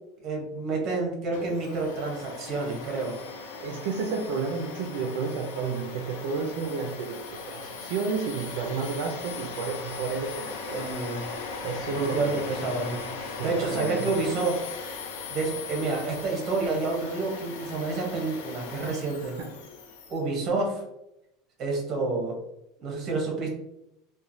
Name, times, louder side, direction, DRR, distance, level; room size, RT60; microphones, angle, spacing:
voice 1, 0.2-3.1 10.7-11.3 11.9-14.6 15.3-19.4 20.1-20.8 21.6-22.3 22.8-23.5, right 3 dB, 30° right, 0 dB, 0.7 m, -29 dB
Domestic sounds home sounds, 1.3-20.2, left 4 dB, 85° left, 0.5 m, -39 dB
voice 2, 3.6-10.8 11.6-12.4 13.4-14.1 19.4-19.5, right 5 dB, 65° right, 2 dB, 0.3 m, -31 dB
3.0 x 2.1 x 2.5 m, 0.86 s
supercardioid pair, 170°, 0 cm